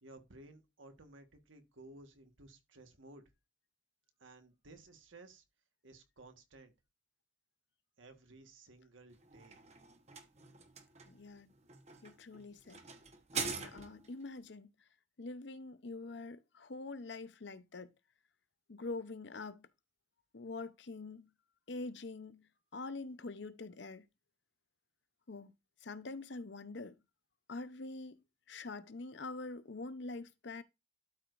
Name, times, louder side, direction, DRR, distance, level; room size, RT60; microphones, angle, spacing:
voice 1, 0.0-3.2 4.2-5.4 5.8-6.7 8.0-9.6, right 2 dB, 85° right, 1.5 m, -56 dB
sound 1, 9.1-14.2, right 5 dB, 35° right, 1.1 m, -44 dB
voice 2, 11.1-11.5 12.0-12.8 13.3-14.7 15.2-17.9 18.7-19.7 20.3-21.3 21.7-22.5 22.7-24.1 25.3-25.5 25.8-27.0 27.5-28.2 28.5-30.6, left 3 dB, 65° left, 0.7 m, -45 dB
12.5 x 4.8 x 2.5 m
head